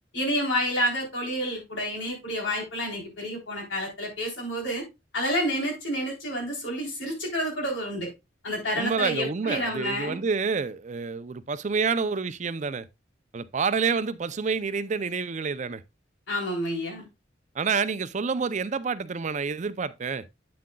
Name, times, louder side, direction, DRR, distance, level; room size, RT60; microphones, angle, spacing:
voice 1, 0.1-4.8 5.1-8.1 8.4-10.2 16.3-17.1, equal, 90° left, 3.6 m, -29 dB
voice 2, 8.8-12.9 13.3-15.8 17.5-20.3, right 5 dB, 40° right, 0.5 m, -28 dB
8.6 x 7.6 x 2.3 m
head